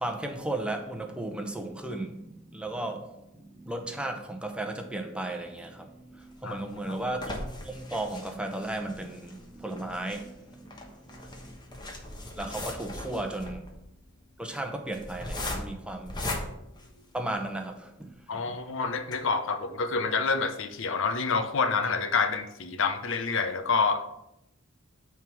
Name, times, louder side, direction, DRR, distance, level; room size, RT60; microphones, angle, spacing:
voice 1, 0.0-11.9 12.4-13.6 14.4-16.4 17.1-18.6, right 1 dB, 5° right, 0.8 m, -35 dB
sound 1, 6.2-17.6 18.1-18.2 18.5-18.6 19.0-19.1, left 1 dB, 20° left, 1.1 m, -39 dB
voice 2, 18.3-24.0, left 4 dB, 65° left, 0.7 m, -28 dB
8.9 x 3.6 x 6.1 m
head